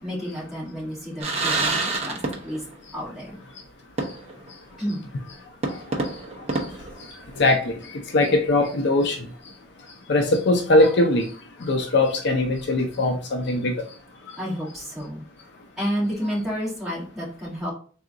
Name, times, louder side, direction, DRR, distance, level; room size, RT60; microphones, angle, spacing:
voice 1, 0.0-2.6 2.9-3.4 4.8-5.0 14.4-15.2 15.8-17.7, equal, ahead, -8 dB, 1.8 m, -30 dB
sound 1, 1.2-2.8 3.1-3.2 4.0-4.5 4.9-5.0 5.6-7.6, right 3 dB, 35° right, 0.7 m, -28 dB
voice 2, 7.4-9.3 10.1-11.3 11.6-13.7, left 2 dB, 60° left, 4 dB, 0.5 m, -21 dB
3.7 x 2.4 x 3.8 m, 0.41 s
head